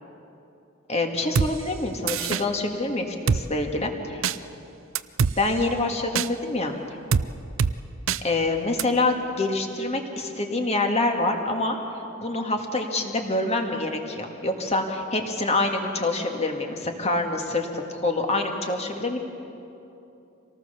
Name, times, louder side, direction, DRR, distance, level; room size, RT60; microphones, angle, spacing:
voice 1, 0.9-4.2 5.4-6.7 8.2-11.8 12.2-19.2, left 2 dB, 30° left, 3 dB, 1.9 m, -26 dB
Drum kit, 1.4-1.5 2.1-2.4 3.3-3.4 4.2-4.4 5.0-5.3 6.2-6.3 7.1-7.3 7.6-7.7 8.1-8.2 8.8-8.9, right 6 dB, 65° right, 0.5 m, -22 dB
25.5 x 18.5 x 6.9 m, 2.8 s
head